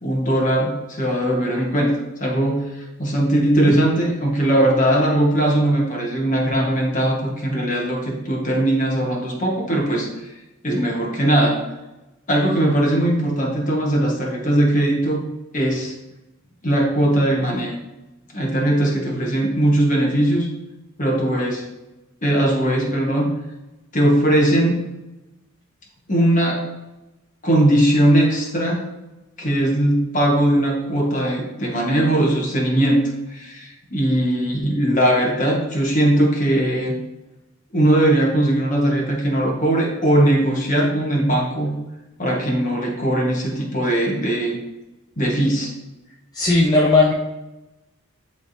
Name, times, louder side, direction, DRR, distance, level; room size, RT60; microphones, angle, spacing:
voice 1, 0.0-10.1 10.6-11.6 12.3-15.2 15.5-15.9 16.6-17.7 18.3-20.5 21.0-21.7 22.2-23.3 23.9-24.8 26.1-26.7 27.4-28.8 29.4-33.0 33.3-37.0 37.7-41.7 42.2-44.6 45.2-45.7, right 1 dB, 35° left, -1 dB, 1.3 m, -19 dB
voice 2, 46.3-47.1, left 3 dB, 20° left, -4 dB, 0.5 m, -16 dB
10.5 x 3.5 x 2.7 m, 1.0 s
head